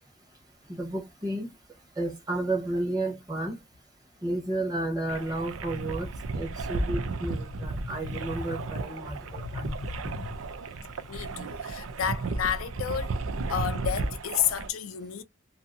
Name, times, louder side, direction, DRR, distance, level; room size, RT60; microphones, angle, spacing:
voice 1, 0.7-1.5 2.0-3.6 4.2-6.1 6.3-9.8, right 2 dB, 20° right, 1.0 m, -32 dB
sound 1, 5.1-14.7, right 3 dB, 85° right, 0.4 m, -34 dB
voice 2, 7.6-8.6 9.3-10.4 11.1-13.2 13.5-15.2, left 9 dB, 90° left, 0.5 m, -32 dB
2.6 x 2.6 x 2.5 m
head